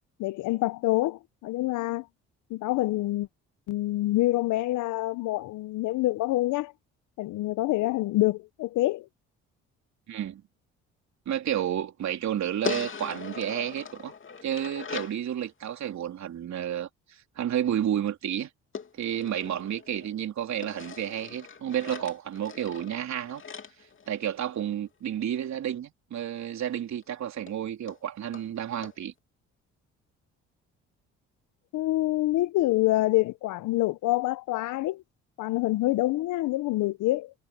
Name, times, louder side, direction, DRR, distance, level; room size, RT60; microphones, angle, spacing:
voice 1, 0.2-2.1 2.5-3.3 3.7-6.7 7.2-9.1 31.7-35.0 35.4-37.3, left 17 dB, 75° left, 1.0 m, -26 dB
voice 2, 10.1-10.4 11.3-14.1 14.4-18.5 19.0-23.4 24.1-29.1, right 10 dB, 60° right, 3.6 m, -31 dB
sound 1, 12.6-15.2 18.7-20.1 20.6-24.7 26.6-26.7 27.0-27.1 27.5-27.6 27.9-28.0 28.3-28.5 28.8-28.9, left 6 dB, 40° left, 2.9 m, -39 dB
supercardioid pair, 55°, 31 cm